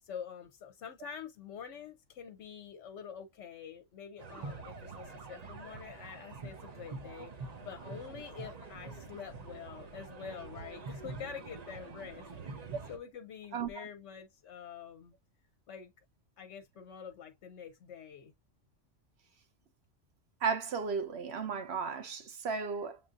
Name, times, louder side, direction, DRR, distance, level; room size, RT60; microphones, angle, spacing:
voice 1, 0.0-15.1 15.7-15.9 16.4-18.3, left 7 dB, 70° left, 0.9 m, -47 dB
sound 1, 4.2-13.0, right 4 dB, 40° right, 0.6 m, -46 dB
voice 2, 13.5-13.8 20.4-23.0, right 5 dB, 60° right, 1.0 m, -34 dB
7.3 x 2.6 x 2.4 m
omnidirectional pair, 1.3 m